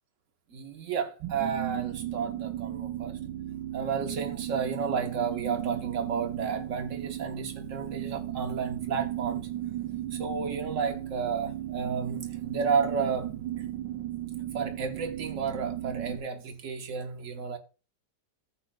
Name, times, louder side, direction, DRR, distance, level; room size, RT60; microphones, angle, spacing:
voice 1, 0.5-3.2 3.7-9.5 10.1-13.3 13.6-13.7 14.5-17.6, right 5 dB, 50° right, 1.3 m, -32 dB
sound 1, 1.2-16.2, right 13 dB, 90° right, 1.3 m, -35 dB
14.0 x 7.5 x 2.3 m
omnidirectional pair, 1.9 m